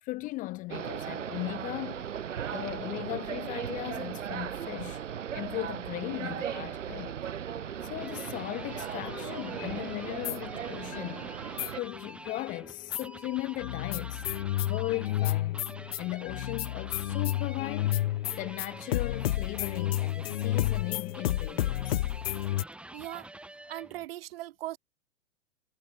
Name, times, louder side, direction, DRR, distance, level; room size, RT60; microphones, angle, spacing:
voice 1, 0.0-2.2 2.5-5.0 5.3-7.2 7.8-11.3 11.7-14.2 14.6-15.6 16.0-18.0 18.4-22.0, left 19 dB, 20° left, 0.7 m, -37 dB
sound 1, 0.7-11.8, right 9 dB, 90° right, 0.7 m, -37 dB
sound 2, 7.5-24.1, right 1 dB, 5° right, 1.7 m, -47 dB
sound 3, 9.1-11.1 11.6-13.2 13.6-22.6, left 14 dB, 55° left, 1.1 m, -31 dB
voice 2, 22.9-23.3 23.7-24.8, right 15 dB, 50° right, 2.0 m, -39 dB
hypercardioid pair, 120°, 36 cm